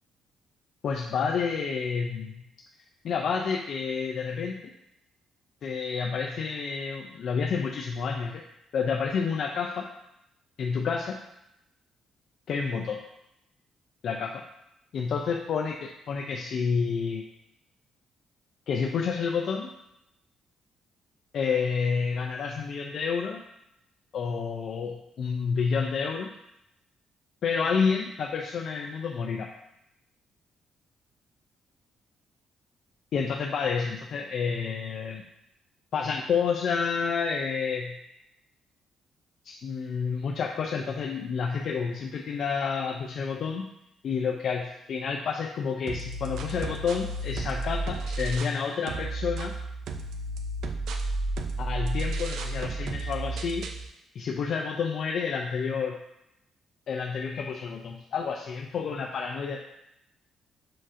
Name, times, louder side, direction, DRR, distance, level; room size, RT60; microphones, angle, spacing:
voice 1, 0.8-2.4 3.0-4.7 5.6-8.4 8.7-9.9 10.6-11.2 12.5-13.0 14.0-14.4 14.9-17.2 18.7-19.7 21.3-23.4 24.1-26.3 27.4-29.5 33.1-35.2 35.9-38.0 39.4-43.7 44.0-49.5 51.6-53.7 54.2-56.0 56.9-59.6, left 5 dB, 65° left, 1 dB, 0.4 m, -29 dB
sound 1, 45.9-48.6 48.9-53.9, right 2 dB, 75° right, 0.4 m, -32 dB
7.4 x 2.6 x 2.5 m, 0.84 s
cardioid pair, 90°, 0 cm